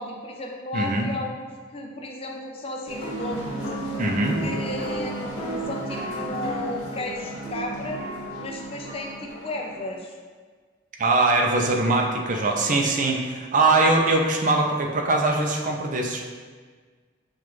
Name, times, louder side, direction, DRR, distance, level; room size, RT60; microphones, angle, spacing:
voice 1, 0.0-3.7 4.4-8.0 8.4-10.2 13.7-13.8, left 1 dB, 30° left, 1 dB, 0.5 m, -34 dB
voice 2, 0.7-1.1 4.0-4.4 11.0-16.2, right 2 dB, 45° right, 1 dB, 0.5 m, -22 dB
sound 1, 2.9-9.9, right 1 dB, 75° left, 1.4 m, -33 dB
6.6 x 2.4 x 3.0 m, 1.5 s
head